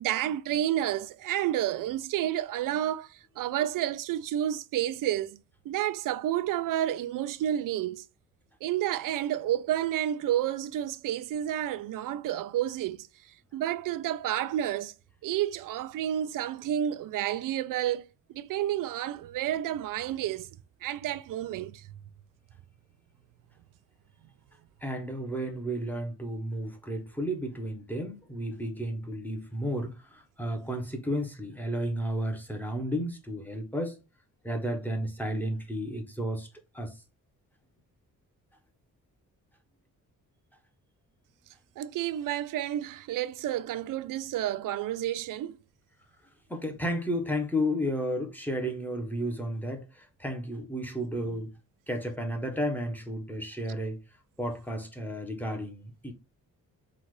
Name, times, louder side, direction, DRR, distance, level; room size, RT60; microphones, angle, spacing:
voice 1, 0.0-5.4 5.7-8.0 8.6-13.1 13.5-14.9 15.2-18.1 18.3-20.5 20.8-21.9 41.8-45.6, right 12 dB, 70° right, 0.5 m, -30 dB
voice 2, 24.8-34.0 34.4-36.5 36.7-37.0 46.5-51.5 51.9-54.0 54.4-56.1, equal, 5° left, 0.9 m, -32 dB
3.9 x 2.5 x 4.7 m
cardioid pair, 120°, 33 cm